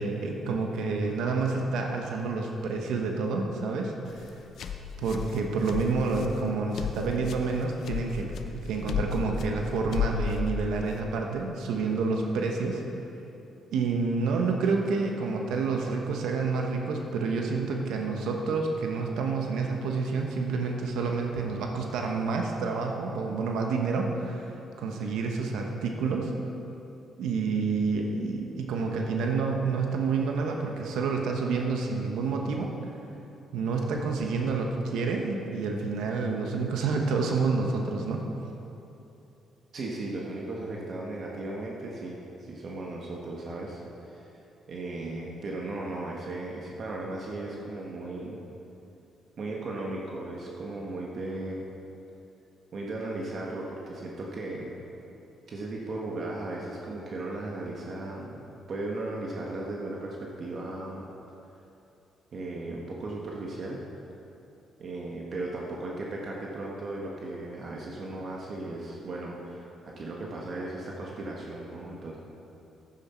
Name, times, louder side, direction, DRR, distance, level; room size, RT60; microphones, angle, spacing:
voice 1, 0.0-4.3 5.0-8.3 8.5-12.8 13.7-26.4 27.2-32.7 33.5-38.2, right 4 dB, 85° right, 2 dB, 1.0 m, -29 dB
sound 1, 4.1-11.0, left 6 dB, 65° left, 0.7 m, -34 dB
voice 2, 39.7-43.8 44.1-44.3 44.7-48.4 49.4-51.7 52.7-54.7 55.5-58.4 58.7-61.0 62.3-63.8 64.8-72.2, right 2 dB, 55° right, -2 dB, 1.3 m, -36 dB
11.0 x 9.3 x 4.4 m, 2.9 s
cardioid pair, 90°, 0 cm